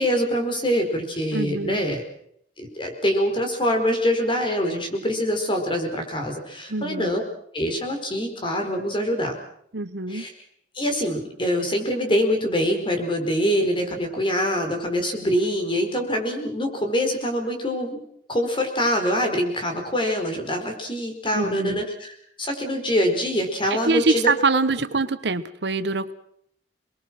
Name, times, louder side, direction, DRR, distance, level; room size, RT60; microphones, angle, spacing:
voice 1, 0.0-2.0 2.6-7.2 7.5-9.4 10.1-10.3 10.7-18.0 18.3-22.1 22.4-24.3, equal, 30° left, 4 dB, 4.7 m, -24 dB
voice 2, 1.3-1.9 6.7-7.1 9.7-10.3 21.3-21.8 23.7-26.1, right 3 dB, 70° right, 13 dB, 1.1 m, -24 dB
28.5 x 21.0 x 6.2 m, 0.67 s
head